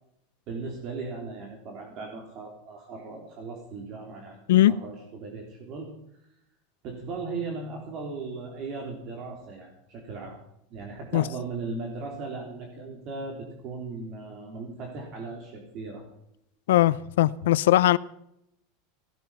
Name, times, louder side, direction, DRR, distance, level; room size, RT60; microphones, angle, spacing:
voice 1, 0.5-4.4 4.7-5.9 6.8-10.4 10.7-16.0, right 3 dB, 40° right, 1 dB, 3.4 m, -37 dB
voice 2, 16.7-18.0, left 14 dB, 85° left, 18 dB, 0.6 m, -19 dB
17.5 x 12.5 x 5.7 m, 0.76 s
supercardioid pair, 155°, 0 cm